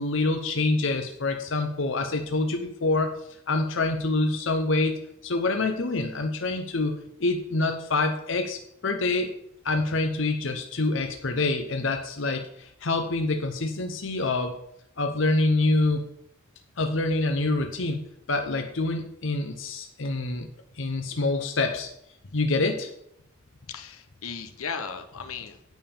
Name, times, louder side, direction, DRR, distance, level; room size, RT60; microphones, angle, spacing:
voice 1, 0.0-3.1 3.5-9.3 9.6-14.6 15.0-16.0 16.8-18.0 18.3-20.5 20.8-21.9 22.3-22.9, left 2 dB, 60° left, 5 dB, 0.8 m, -26 dB
voice 2, 23.6-25.6, left 6 dB, 80° left, 7 dB, 1.0 m, -36 dB
9.3 x 5.6 x 7.0 m, 0.77 s
head